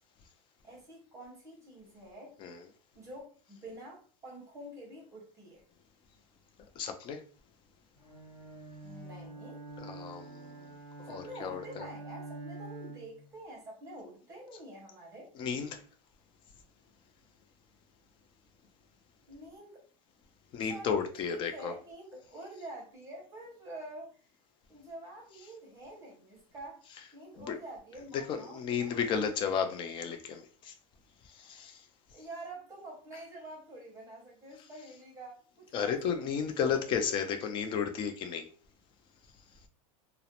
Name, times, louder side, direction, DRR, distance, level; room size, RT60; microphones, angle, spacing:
voice 1, 0.6-2.4 2.9-5.6 8.8-9.6 11.0-15.3 19.3-19.8 20.6-24.3 24.7-26.9 27.1-29.5 32.1-36.1 36.6-37.1, right 1 dB, 15° right, -2 dB, 0.7 m, -47 dB
voice 2, 6.8-7.2 9.8-11.9 15.4-15.8 20.5-21.7 27.4-27.6 28.1-30.7 31.3-31.8 35.7-38.5, left 7 dB, 30° left, 6 dB, 0.3 m, -33 dB
Bowed string instrument, 8.0-13.3, right 2 dB, 65° left, 1.3 m, -46 dB
2.4 x 2.0 x 2.8 m, 0.42 s
supercardioid pair, 145°, 18 cm